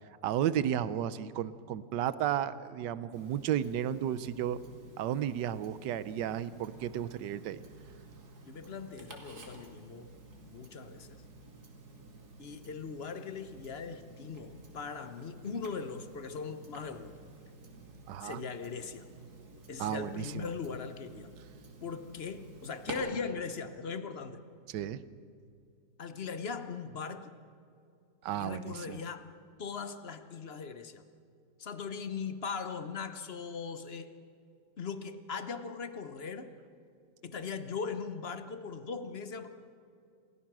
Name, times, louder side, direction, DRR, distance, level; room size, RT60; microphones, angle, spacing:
voice 1, 0.2-4.6 5.0-7.6 18.1-18.4 19.8-20.5 24.7-25.0 28.2-29.0, right 10 dB, 80° right, 15 dB, 1.4 m, -33 dB
Tick-tock, 3.1-22.9, right 3 dB, 60° right, 2.8 m, -52 dB
voice 2, 8.4-11.2 12.4-17.1 18.2-19.1 19.7-21.3 21.8-24.4 26.0-27.3 28.4-29.3 29.6-31.0 31.6-34.1 34.8-36.5 37.2-39.5, left 5 dB, 40° left, 10 dB, 1.0 m, -39 dB
28.0 x 15.5 x 6.1 m, 2.4 s
omnidirectional pair, 1.9 m